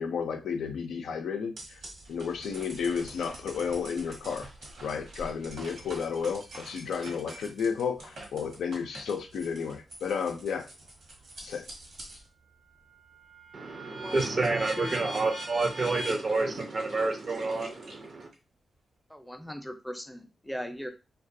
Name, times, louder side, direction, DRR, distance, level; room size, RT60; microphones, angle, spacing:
voice 1, 0.0-1.8 2.1-4.5 4.8-10.7 11.4-11.7, left 6 dB, 85° left, 5 dB, 0.4 m, -32 dB
sound 1, 1.6-12.3 12.7-18.3, right 1 dB, 80° right, 1.0 m, -44 dB
voice 2, 13.5-18.3, right 3 dB, 55° right, 5 dB, 0.5 m, -29 dB
voice 3, 19.1-20.9, equal, 10° left, 6 dB, 0.5 m, -38 dB
2.3 x 2.2 x 2.6 m, 0.29 s
supercardioid pair, 45°, 0 cm